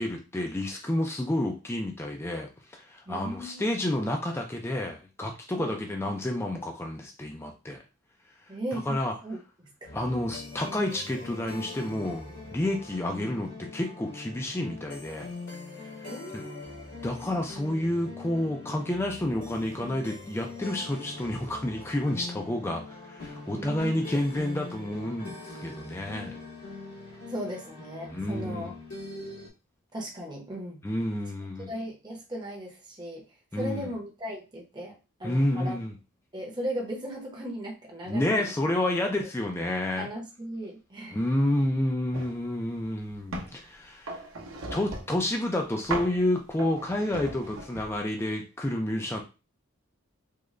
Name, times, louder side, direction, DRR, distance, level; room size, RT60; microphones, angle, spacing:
voice 1, 0.0-7.8 8.7-9.1 9.9-15.3 17.0-26.3 28.1-28.7 30.8-31.7 33.5-33.9 35.2-35.9 38.1-40.1 41.1-44.2 44.7-49.2, left 1 dB, 10° left, 2 dB, 0.3 m, -30 dB
voice 2, 3.1-3.6 5.5-5.8 8.5-9.4 9.8-9.9 16.0-16.8 23.5-24.1 27.1-28.8 29.9-30.8 31.7-33.2 33.5-34.9 35.2-35.8 36.3-38.5 39.0-39.1 40.0-41.2, right 1 dB, 20° right, -1 dB, 0.7 m, -37 dB
sound 1, 9.8-29.5, left 3 dB, 90° left, 1.7 m, -42 dB
sound 2, 42.1-42.4 42.8-43.6 44.1-45.3 45.9-46.2 46.6-48.0, right 2 dB, 60° right, 0.8 m, -37 dB
3.6 x 2.1 x 3.1 m, 0.31 s
head